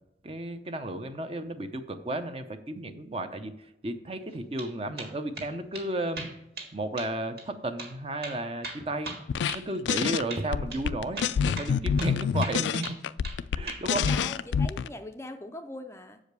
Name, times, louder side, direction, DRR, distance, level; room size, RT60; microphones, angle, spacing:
voice 1, 0.2-6.3 6.7-9.1 9.5-13.0 13.5-14.1, right 1 dB, 30° right, 9 dB, 0.6 m, -33 dB
sound 1, 4.3-4.7 5.0-5.5 5.7-5.9 6.2-6.7 7.0-7.1 7.4-7.5 7.8-7.9 8.2-10.0 10.3-10.5 10.7-10.8 11.2-12.1 12.4-13.4 13.7-14.2, right 3 dB, 60° right, 1.9 m, -39 dB
sound 2, 9.3-9.6 9.9-10.2 10.5-14.9, left 7 dB, 80° left, 0.3 m, -27 dB
voice 2, 14.0-16.2, left 1 dB, 15° left, 7 dB, 0.4 m, -41 dB
7.3 x 5.0 x 6.7 m, 0.83 s
head